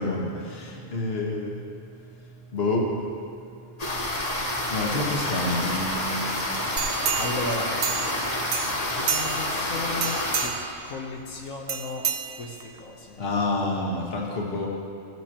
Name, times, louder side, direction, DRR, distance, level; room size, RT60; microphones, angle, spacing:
voice 1, 0.0-1.6 2.5-3.0 4.7-6.5 13.2-14.7, left 2 dB, 50° left, -1 dB, 1.4 m, -28 dB
sound 1, 3.8-10.5, left 1 dB, 30° left, 1.0 m, -28 dB
sound 2, 6.8-8.2 8.5-9.6 10.0-10.8 11.7-12.8 13.3-13.4, right 8 dB, 80° right, 1.1 m, -30 dB
voice 2, 7.1-7.8 8.9-13.2, left 2 dB, 80° left, -2 dB, 1.3 m, -35 dB
16.0 x 7.6 x 2.9 m, 2.5 s
omnidirectional pair, 1.4 m